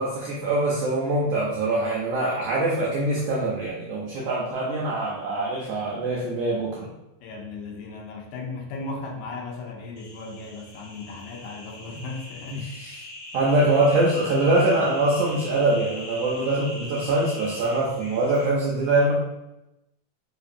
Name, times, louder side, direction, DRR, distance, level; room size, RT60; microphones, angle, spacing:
voice 1, 0.0-6.9 12.5-13.0 13.3-19.1, right 2 dB, 85° right, -5 dB, 1.4 m, -23 dB
voice 2, 7.2-12.6, left 3 dB, 85° left, 0 dB, 2.1 m, -36 dB
sound 1, 10.0-18.5, left 1 dB, 65° left, 2.1 m, -41 dB
4.9 x 2.5 x 2.5 m, 0.93 s
omnidirectional pair, 3.5 m